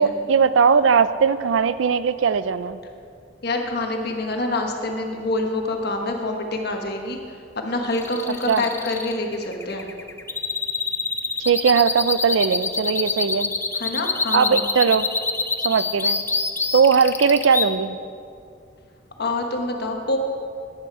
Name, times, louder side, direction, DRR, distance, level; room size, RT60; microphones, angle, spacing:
voice 1, 0.0-2.8 8.5-8.6 11.4-13.5 14.3-15.1 15.6-16.2 16.7-18.0, right 6 dB, 85° right, 14 dB, 0.4 m, -19 dB
voice 2, 3.4-7.2 7.6-9.9 13.7-14.6 19.2-20.2, left 2 dB, 60° left, 3 dB, 1.3 m, -26 dB
sound 1, 7.9-17.7, left 4 dB, 15° left, 0.5 m, -25 dB
11.5 x 9.7 x 4.8 m, 2.5 s
head